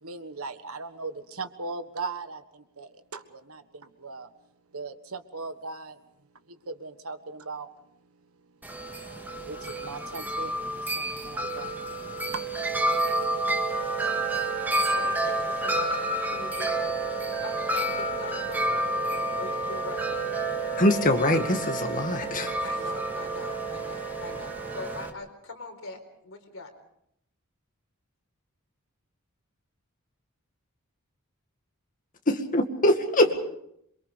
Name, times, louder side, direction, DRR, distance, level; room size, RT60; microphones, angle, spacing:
voice 1, 0.0-4.3 4.7-6.0 6.5-7.7 9.4-13.0, right 4 dB, 75° right, 10 dB, 1.5 m, -39 dB
Wind chime, 8.6-25.1, right 2 dB, 10° right, 2.0 m, -30 dB
Wind instrument woodwind instrument, 13.7-25.1, right 5 dB, 35° right, 4.5 m, -39 dB
voice 2, 14.8-19.0 19.4-20.2 22.6-26.7 33.2-33.3, left 3 dB, 65° left, 4 dB, 4.5 m, -41 dB
voice 3, 20.8-22.6 32.3-33.3, left 1 dB, 40° left, 4 dB, 2.1 m, -23 dB
27.0 x 23.0 x 5.2 m, 0.75 s
head